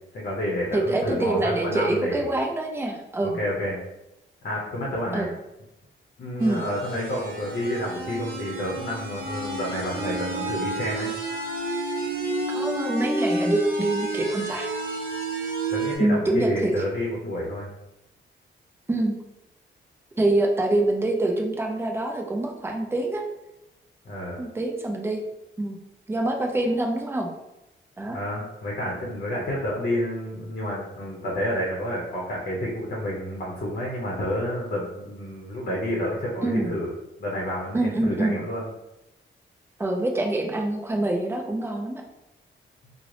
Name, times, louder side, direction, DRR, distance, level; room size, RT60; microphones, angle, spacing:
voice 1, 0.1-2.4 3.4-3.8 4.4-5.3 6.2-11.1 15.7-17.7 24.0-24.4 28.1-36.9 37.2-38.7, equal, 45° left, -3 dB, 0.7 m, -29 dB
voice 2, 0.7-3.4 5.1-5.3 6.4-6.7 12.5-14.7 16.0-16.7 18.9-19.1 20.2-23.2 24.4-25.2 25.6-25.8 26.1-27.3 28.0-28.2 36.4-36.7 37.7-38.4 39.8-42.0, right 2 dB, 10° right, 1 dB, 0.4 m, -25 dB
sound 1, 6.4-16.0, right 2 dB, 45° right, 0.8 m, -30 dB
3.1 x 2.0 x 3.7 m, 0.93 s
wide cardioid pair, 175°, 20 cm